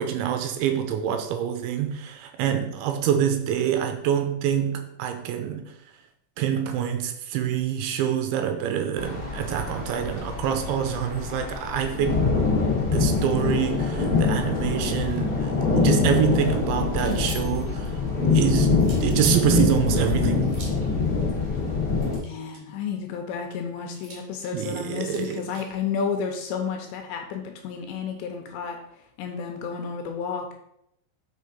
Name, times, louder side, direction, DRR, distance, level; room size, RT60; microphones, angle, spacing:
voice 1, 0.0-5.7 6.4-12.2 12.9-17.9 18.3-18.7 19.0-20.6 24.5-25.5, right 9 dB, 80° right, 2.9 m, -26 dB
sound 1, 9.0-22.2, left 4 dB, 40° left, 1.3 m, -24 dB
sound 2, 16.9-17.8 18.8-19.5 20.4-20.9 22.0-22.8 23.9-25.8, right 2 dB, 50° right, 2.2 m, -44 dB
voice 2, 22.2-28.8 29.2-30.5, left 6 dB, 75° left, 2.8 m, -31 dB
6.5 x 5.4 x 5.4 m
omnidirectional pair, 5.6 m